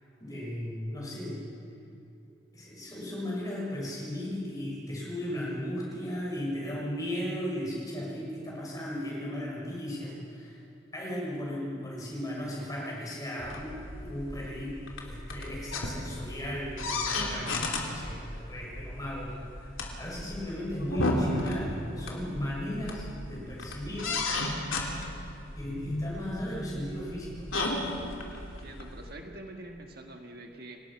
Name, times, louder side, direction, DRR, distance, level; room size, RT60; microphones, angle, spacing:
voice 1, 0.2-1.4 2.5-10.6 10.9-19.3 19.6-24.2 25.6-27.3, equal, 20° left, -4 dB, 6.4 m, -36 dB
sound 1, 13.4-29.1, left 2 dB, 85° left, 3.2 m, -35 dB
voice 2, 28.4-30.8, right 1 dB, 50° right, 3 dB, 1.6 m, -45 dB
28.5 x 18.5 x 6.0 m, 2.7 s
head